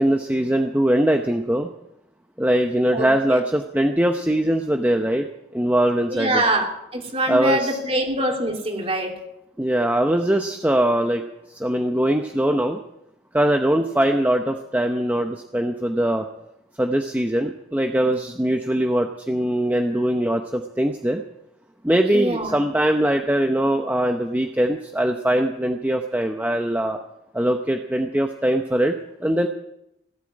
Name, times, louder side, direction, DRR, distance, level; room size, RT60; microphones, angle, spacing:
voice 1, 0.0-1.7 2.4-5.3 5.5-6.4 7.3-7.8 9.6-11.2 11.5-12.8 13.3-16.3 16.8-21.2 21.8-27.0 27.3-29.5, right 1 dB, 10° right, 4 dB, 0.8 m, -21 dB
voice 2, 2.9-3.4 6.1-9.1 22.1-22.6, right 1 dB, 30° right, 1 dB, 3.1 m, -24 dB
18.0 x 8.3 x 9.7 m, 0.83 s
head